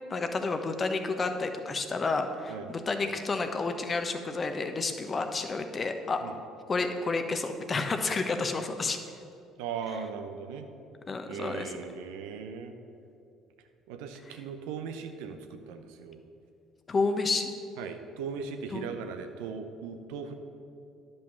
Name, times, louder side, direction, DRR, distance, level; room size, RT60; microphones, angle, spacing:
voice 1, 0.1-6.2 6.7-9.0 11.1-11.7 16.9-17.5 18.7-18.8, left 3 dB, 35° left, 6 dB, 1.0 m, -30 dB
voice 2, 9.6-10.7 11.3-12.7 13.9-16.2 17.8-20.3, right 6 dB, 75° right, 6 dB, 0.7 m, -38 dB
10.5 x 5.3 x 7.0 m, 2.5 s
hypercardioid pair, 55°, 0 cm